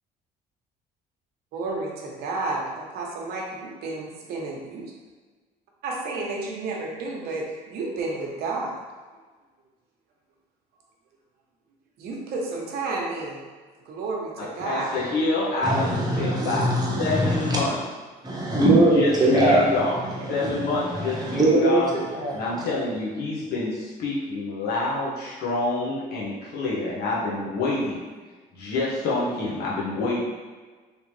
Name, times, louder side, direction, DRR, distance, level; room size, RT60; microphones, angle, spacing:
voice 1, 1.5-4.8 5.8-8.7 12.0-13.4 13.8-14.9 27.7-27.9, right 3 dB, 70° right, 0.8 m, -31 dB
voice 2, 14.6-15.9 16.2-16.6 17.0-17.7 18.9-20.0 20.3-21.9 22.4-23.7 24.0-25.1 25.4-27.8 28.7-30.2, left 2 dB, 70° left, 0.9 m, -26 dB
voice 3, 15.6-17.6 18.2-22.5, right 1 dB, 25° right, 1.0 m, -22 dB
3.4 x 2.8 x 3.1 m
cardioid pair, 110°, 17 cm